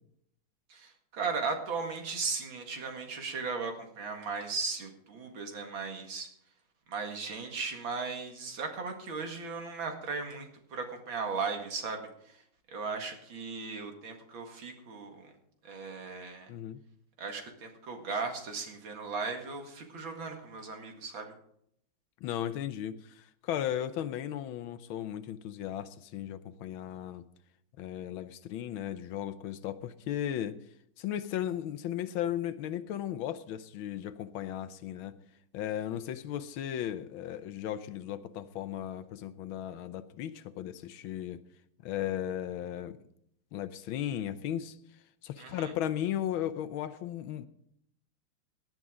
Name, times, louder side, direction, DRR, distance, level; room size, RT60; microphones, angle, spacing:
voice 1, 0.7-6.3 6.9-12.4 12.7-15.3 15.6-16.5 17.2-21.3 45.4-45.7, right 4 dB, 65° right, 3 dB, 2.6 m, -37 dB
voice 2, 16.5-16.8 22.2-27.2 27.8-30.6 31.0-35.2 35.5-41.4 41.8-43.0 43.5-44.8 45.2-47.5, left 11 dB, 75° left, 13 dB, 1.5 m, -36 dB
18.0 x 10.5 x 3.7 m, 0.70 s
omnidirectional pair, 2.3 m